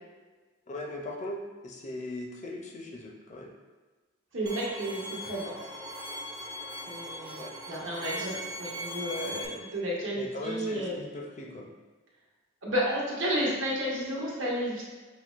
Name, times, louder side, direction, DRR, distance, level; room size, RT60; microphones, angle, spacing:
voice 1, 0.7-3.5 7.4-7.5 10.1-11.7, left 1 dB, 35° left, 1 dB, 0.4 m, -39 dB
voice 2, 4.3-5.5 6.9-10.9 12.6-14.8, equal, 70° right, -5 dB, 1.1 m, -32 dB
Bowed string instrument, 4.5-9.5, equal, 20° right, 0.4 m, -39 dB
6.0 x 2.1 x 2.4 m, 1.3 s
head